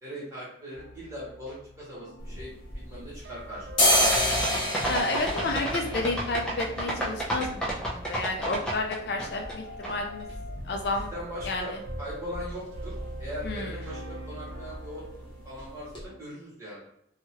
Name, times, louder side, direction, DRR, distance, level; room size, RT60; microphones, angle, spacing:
voice 1, 0.0-3.7 10.9-12.9 13.2-16.9, equal, 15° right, -8 dB, 1.3 m, -40 dB
sound 1, 0.7-16.2, right 1 dB, 65° right, 0.7 m, -42 dB
sound 2, 2.2-3.3 3.6-11.3 11.6-11.7 12.0-12.6 12.9-13.1 13.3-13.6 13.9-14.6 14.9-15.1 15.6-15.7 15.9-16.0, left 1 dB, 25° left, 0.8 m, -30 dB
sound 3, 3.9-9.5 9.8-9.9, right 1 dB, 5° left, 0.5 m, -30 dB
voice 2, 4.8-7.6 7.9-10.3 10.7-11.1 11.4-11.6 13.4-13.7, left 2 dB, 60° left, 2 dB, 0.4 m, -31 dB
2.9 x 2.3 x 2.9 m, 0.73 s
head